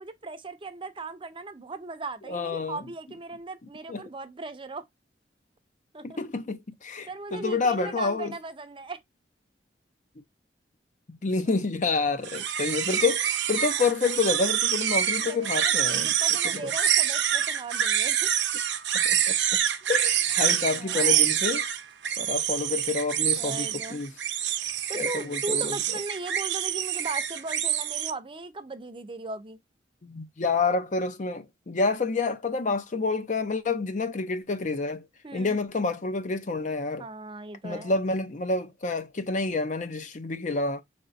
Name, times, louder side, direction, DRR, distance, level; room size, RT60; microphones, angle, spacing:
voice 1, 0.0-4.8 5.9-6.2 7.1-9.0 11.5-11.6 15.2-18.3 20.4-21.3 23.4-24.0 24.9-29.6 35.2-35.6 37.0-38.0, right 3 dB, 30° right, 0.6 m, -38 dB
voice 2, 2.3-2.8 3.9-4.0 6.0-8.3 11.1-16.1 18.9-19.6 19.9-21.6 22.2-24.1 24.9-25.7 30.0-35.1 35.3-37.0 37.6-40.8, left 4 dB, 45° left, 0.6 m, -28 dB
sound 1, 12.2-28.1, right 10 dB, 80° right, 0.7 m, -26 dB
5.8 x 3.4 x 2.5 m
head